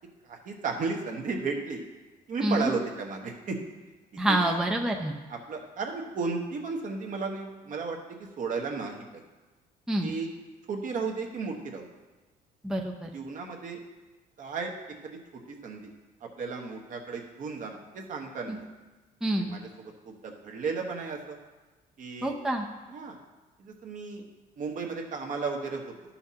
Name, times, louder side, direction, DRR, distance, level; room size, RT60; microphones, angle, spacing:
voice 1, 0.2-1.8 2.3-3.6 4.1-4.6 5.3-9.2 10.0-10.3 10.7-11.9 13.1-13.8 14.4-14.7 15.0-15.9 16.2-18.6 19.3-21.4 22.0-22.3 22.9-23.2 23.6-24.2 24.6-25.9, right 4 dB, 50° right, 2 dB, 1.2 m, -34 dB
voice 2, 2.4-2.7 4.2-5.2 9.9-10.1 12.6-13.1 18.5-18.6 19.2-19.6 22.2-22.7, right 1 dB, 5° right, 1 dB, 0.6 m, -27 dB
11.0 x 5.7 x 2.8 m, 1.2 s
cardioid pair, 110°, 17 cm